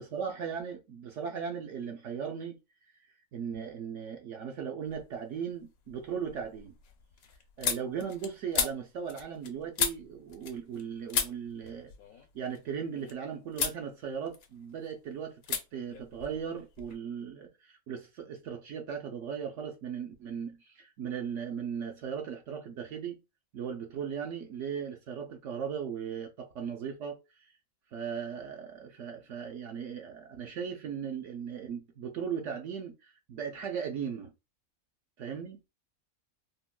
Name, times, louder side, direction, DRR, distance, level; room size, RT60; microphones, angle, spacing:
voice 1, 0.0-2.6 3.3-6.7 7.6-11.9 12.3-23.2 23.5-27.5 27.9-34.3 35.2-35.6, right 7 dB, 65° right, 0.8 m, -37 dB
sound 1, 4.9-5.4 5.8-10.8 11.1-13.1 13.5-13.8 14.2-14.9 15.4-15.6 15.9-17.0, left 7 dB, 85° left, 1.1 m, -35 dB
3.6 x 2.2 x 2.2 m
omnidirectional pair, 1.5 m